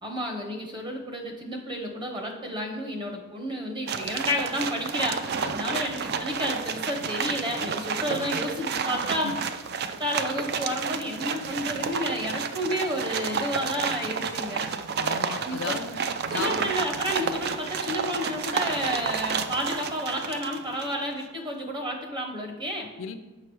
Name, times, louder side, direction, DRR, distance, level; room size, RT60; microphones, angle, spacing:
voice 1, 0.0-9.3 10.0-14.7 15.4-15.7 16.3-22.9, equal, 20° right, 2 dB, 0.8 m, -31 dB
sound 1, 3.9-21.0, right 6 dB, 45° right, 0.3 m, -31 dB
voice 2, 5.4-5.8 8.1-8.4 9.2-9.3 15.0-16.0 16.3-16.7 23.0-23.2, left 5 dB, 60° left, 9 dB, 0.4 m, -35 dB
5.8 x 5.6 x 4.7 m, 1.2 s
head